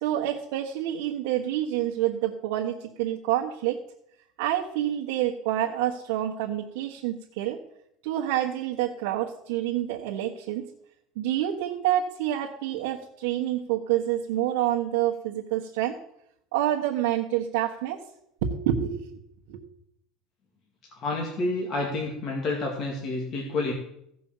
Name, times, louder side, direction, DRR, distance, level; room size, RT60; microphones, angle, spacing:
voice 1, 0.0-3.8 4.4-7.6 8.0-10.6 11.1-15.9 16.5-18.0 18.4-19.2 19.5-19.6, right 12 dB, 85° right, -5 dB, 1.5 m, -27 dB
voice 2, 21.0-23.7, left 2 dB, 35° left, -1 dB, 2.2 m, -29 dB
15.5 x 5.5 x 7.4 m, 0.76 s
cardioid pair, 160°, 0 cm